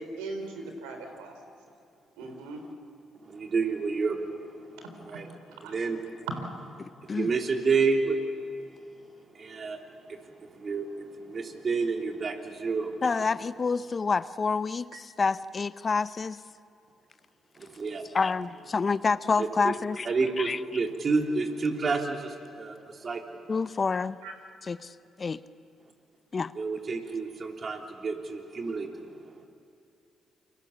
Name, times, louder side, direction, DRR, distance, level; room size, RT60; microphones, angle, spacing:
voice 1, 0.0-1.4 2.2-2.6 4.8-4.9 5.6-5.8 24.2-24.3, right 2 dB, 85° right, 5 dB, 3.7 m, -39 dB
voice 2, 3.3-5.3 5.6-6.3 7.0-8.2 9.3-9.8 10.1-13.0 17.6-18.1 19.4-19.7 20.1-23.2 26.6-29.1 29.4-29.5, right 4 dB, 45° right, 2 dB, 3.5 m, -30 dB
voice 3, 6.8-7.3 13.0-16.4 18.1-20.1 20.4-20.6 23.5-24.2 24.6-25.4 26.3-26.5, left 4 dB, 40° left, 15 dB, 0.7 m, -28 dB
28.5 x 24.5 x 7.3 m, 2.6 s
hypercardioid pair, 50°, 0 cm